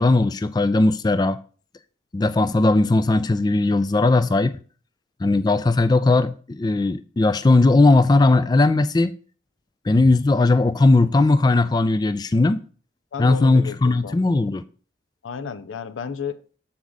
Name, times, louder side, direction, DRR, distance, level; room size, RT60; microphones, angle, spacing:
voice 1, 0.0-1.4 2.1-4.6 5.2-9.1 9.9-12.6 13.2-14.6, left 2 dB, 20° left, 0.3 m, -18 dB
voice 2, 13.1-14.2 15.2-16.3, left 6 dB, 85° left, 0.5 m, -32 dB
7.3 x 4.8 x 3.9 m
head